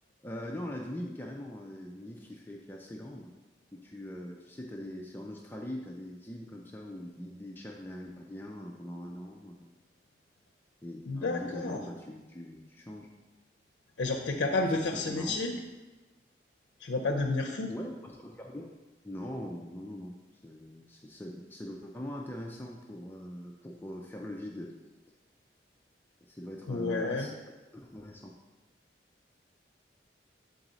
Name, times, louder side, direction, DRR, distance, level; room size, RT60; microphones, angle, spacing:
voice 1, 0.2-3.3 3.7-9.7 10.8-13.1 14.6-15.6 17.7-18.7 19.0-20.1 20.4-24.7 26.2-27.4 27.7-28.3, left 1 dB, 10° left, 0 dB, 0.4 m, -42 dB
voice 2, 11.1-11.8 14.0-15.5 16.8-17.7 26.7-27.3, left 3 dB, 85° left, 2 dB, 0.5 m, -30 dB
7.5 x 3.9 x 3.9 m, 1.2 s
head